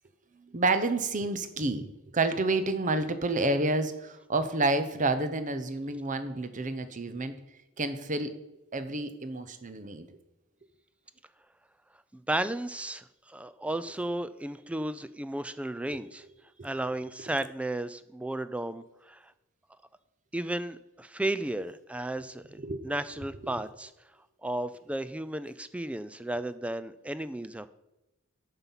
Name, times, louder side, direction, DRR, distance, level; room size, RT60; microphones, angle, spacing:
voice 1, 0.4-7.3 7.8-8.3 8.7-10.1 15.9-16.0 22.6-22.9, right 2 dB, 35° right, 11 dB, 0.8 m, -29 dB
voice 2, 12.1-16.2 16.6-19.3 20.3-23.9 24.4-27.7, right 1 dB, 5° right, 13 dB, 0.3 m, -34 dB
9.7 x 5.6 x 7.2 m, 0.94 s
head